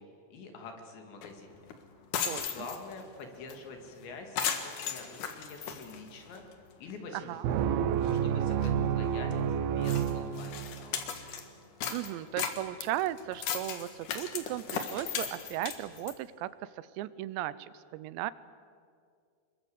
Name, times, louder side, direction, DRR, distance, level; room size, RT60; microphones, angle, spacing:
voice 1, 0.0-1.6 2.3-6.4 6.8-7.7 8.2-11.0, left 3 dB, 85° left, 4 dB, 4.9 m, -46 dB
sound 1, 1.2-1.3 1.7-1.8 2.0-3.0 3.5-3.6 3.9-4.0 4.4-6.5 6.9-7.0 7.6-7.7 7.9-8.2 8.6-8.7 9.3-9.4 9.8-11.4 11.8-16.2, left 7 dB, 55° left, 2.6 m, -36 dB
voice 2, 7.1-7.5 11.9-18.3, right 14 dB, 90° right, 17 dB, 3.0 m, -36 dB
sound 2, 7.4-11.0, right 8 dB, 75° right, 2.6 m, -29 dB
25.5 x 22.0 x 8.2 m, 2.2 s
omnidirectional pair, 5.0 m